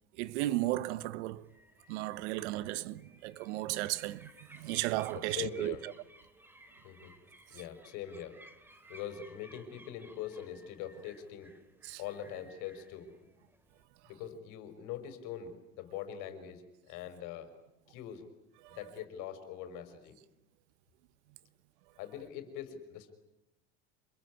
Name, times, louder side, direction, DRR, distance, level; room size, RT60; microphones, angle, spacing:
voice 1, 0.2-1.5 1.9-5.9 11.8-12.0 18.6-18.8, right 17 dB, 80° right, 1.3 m, -35 dB
sound 1, 1.3-13.8, right 1 dB, 5° right, 2.8 m, -59 dB
voice 2, 5.1-5.8 6.8-7.2 7.5-8.4 8.9-11.5 12.0-13.3 14.1-17.5 17.9-18.2 18.7-20.2 22.0-23.1, left 9 dB, 60° left, 5.5 m, -43 dB
27.5 x 22.0 x 9.7 m
supercardioid pair, 125°, 34 cm